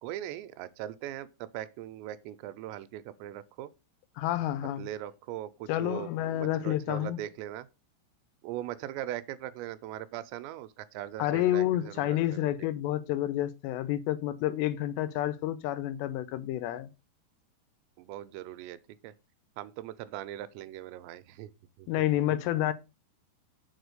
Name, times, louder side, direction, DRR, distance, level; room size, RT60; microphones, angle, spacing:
voice 1, 0.0-3.7 4.8-7.7 8.4-12.5 18.0-18.8 19.0-19.1 19.6-21.5 21.8-21.9, right 13 dB, 85° right, 2.7 m, -40 dB
voice 2, 4.2-4.8 5.7-7.2 11.2-16.9 21.9-22.7, left 13 dB, 80° left, 2.7 m, -29 dB
6.8 x 4.3 x 6.5 m
omnidirectional pair, 5.1 m